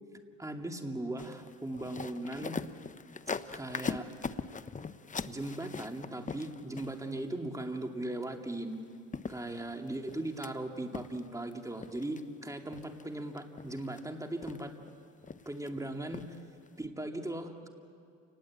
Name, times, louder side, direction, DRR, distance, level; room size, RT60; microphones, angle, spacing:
voice 1, 0.4-2.6 3.3-4.1 5.3-8.8 9.3-14.7 15.5-16.4 16.8-17.7, right 1 dB, 10° right, 4 dB, 2.5 m, -38 dB
sound 1, 1.2-7.2 8.7-8.8 9.1-10.5 10.9-11.5 11.8-12.2 12.7-13.0 13.4-14.0 14.4-14.9 15.2-15.7 16.1-16.3 16.7-16.8, left 5 dB, 25° left, 0.8 m, -41 dB
29.0 x 20.0 x 8.6 m, 2.3 s
cardioid pair, 90°, 30 cm